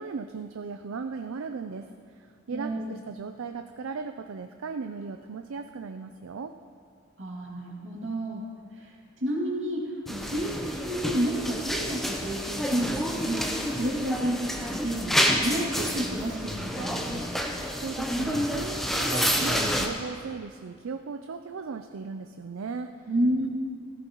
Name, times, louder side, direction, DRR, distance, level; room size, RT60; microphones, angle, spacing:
voice 1, 0.0-1.9 2.2-6.5 17.8-23.1, right 5 dB, 80° right, 7 dB, 0.5 m, -37 dB
voice 2, 2.5-2.8 7.2-8.4 8.7-8.9 9.2-17.3 23.1-23.5, right 1 dB, 60° right, -3 dB, 2.5 m, -30 dB
sound 1, 10.1-19.9, equal, ahead, 0.7 m, -29 dB
16.0 x 14.5 x 3.0 m, 2.1 s
head